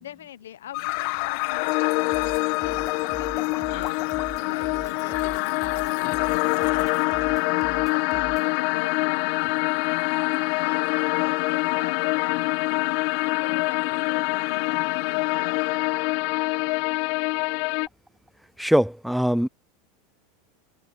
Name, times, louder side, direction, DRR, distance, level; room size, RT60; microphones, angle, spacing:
voice 1, 0.0-2.7 3.1-6.9 7.2-9.8 10.6-15.9, left 11 dB, 85° left, 0.9 m, -41 dB
sound 1, 0.7-17.9, left 27 dB, 60° left, 1.0 m, -25 dB
sound 2, 1.9-4.6 4.9-5.2 8.7-8.8 9.2-9.6, left 12 dB, 40° left, 1.4 m, -43 dB
sound 3, 2.0-8.5, right 5 dB, 20° right, 5.6 m, -43 dB
voice 2, 18.6-19.5, equal, ahead, 0.5 m, -21 dB
open air
hypercardioid pair, 100°, 0 cm